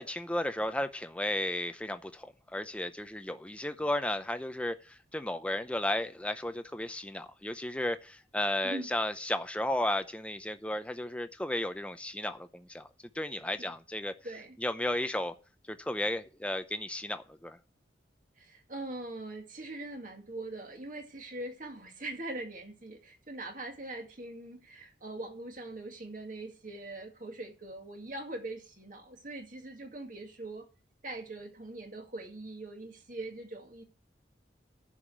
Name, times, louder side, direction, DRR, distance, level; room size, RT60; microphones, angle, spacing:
voice 1, 0.0-12.9 13.1-14.1 14.6-15.3 15.7-17.6, left 1 dB, 5° left, 0.7 m, -34 dB
voice 2, 14.2-14.6 18.4-30.7 31.0-33.8, right 2 dB, 45° right, 2.1 m, -42 dB
11.0 x 5.1 x 7.6 m
head